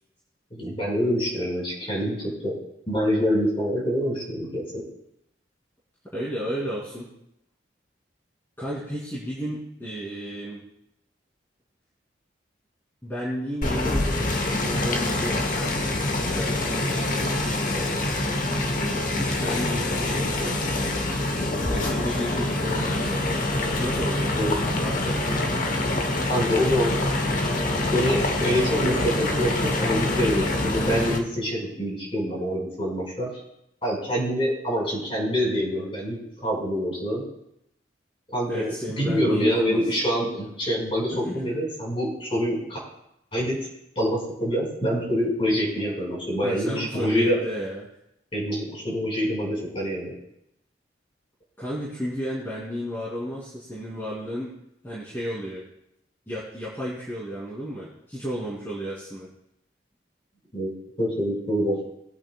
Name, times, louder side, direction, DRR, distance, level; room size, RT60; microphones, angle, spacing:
voice 1, 0.5-2.5 2.9-4.8 24.4-24.5 26.3-27.0 27.9-33.3 33.8-37.2 38.3-42.8 43.3-43.6 43.9-47.4 48.3-50.1 60.5-60.7 61.0-61.8, equal, 30° left, -4 dB, 4.8 m, -26 dB
voice 2, 6.1-7.1 8.6-10.6 13.0-15.7 16.2-17.9 18.7-20.5 21.7-23.2 23.8-24.3 24.7-25.4 38.5-39.9 41.1-41.4 46.4-47.8 51.6-54.5 54.8-55.6 56.3-59.3, equal, 10° left, -8 dB, 2.5 m, -33 dB
sound 1, 13.6-31.2, left 2 dB, 45° left, 1.0 m, -25 dB
21.0 x 8.6 x 2.3 m, 0.79 s
head